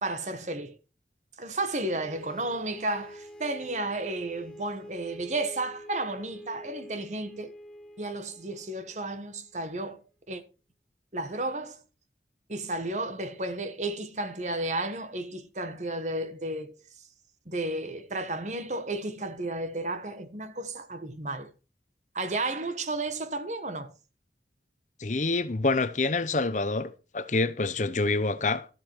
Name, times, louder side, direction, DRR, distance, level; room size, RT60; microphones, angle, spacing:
voice 1, 0.0-0.8 1.4-7.5 8.0-10.4 11.1-11.8 12.5-16.8 17.5-21.5 22.1-23.9, right 2 dB, 40° right, 1.3 m, -33 dB
sound 1, 2.0-9.7, equal, 5° left, 1.7 m, -47 dB
voice 2, 25.0-28.7, left 3 dB, 45° left, 0.8 m, -27 dB
13.0 x 7.7 x 4.6 m
head